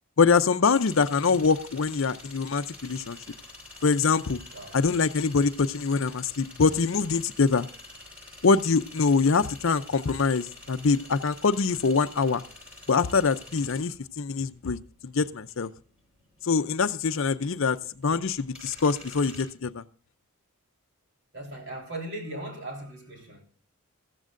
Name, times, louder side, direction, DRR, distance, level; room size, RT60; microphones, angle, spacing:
voice 1, 0.2-3.2 3.8-4.4 4.7-7.7 8.4-12.4 12.9-14.8 15.0-15.7 16.4-19.8, left 4 dB, 60° left, 0.6 m, -24 dB
sound 1, 0.7-19.4, left 2 dB, 5° right, 7.7 m, -47 dB
voice 2, 21.3-23.4, right 1 dB, 55° right, 3.5 m, -38 dB
14.5 x 14.0 x 2.5 m
head